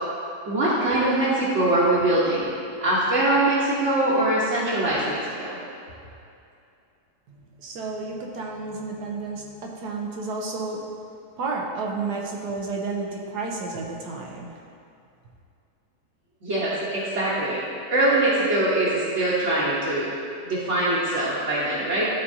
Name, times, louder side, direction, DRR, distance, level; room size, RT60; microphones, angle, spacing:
voice 1, 0.5-2.5 2.8-5.6 16.4-17.6 17.9-20.1 20.4-22.1, right 1 dB, 50° right, -9 dB, 1.4 m, -22 dB
voice 2, 7.3-10.8 11.4-14.6, right 3 dB, 90° right, 0 dB, 1.4 m, -31 dB
12.5 x 4.2 x 2.8 m, 2.5 s
omnidirectional pair, 1.7 m